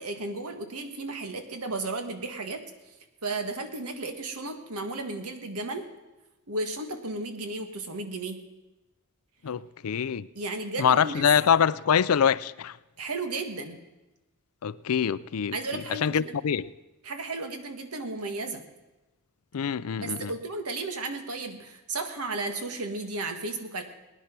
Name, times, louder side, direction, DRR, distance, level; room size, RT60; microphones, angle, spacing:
voice 1, 0.0-2.6 3.2-5.9 6.5-8.4 10.3-11.3 13.0-13.8 15.5-16.3 17.0-18.6 20.0-23.8, right 3 dB, 85° right, 1.7 m, -34 dB
voice 2, 9.4-10.3 10.8-12.7 14.6-15.6 16.0-16.7 19.5-20.3, left 7 dB, 80° left, 0.5 m, -24 dB
20.0 x 10.0 x 6.0 m
head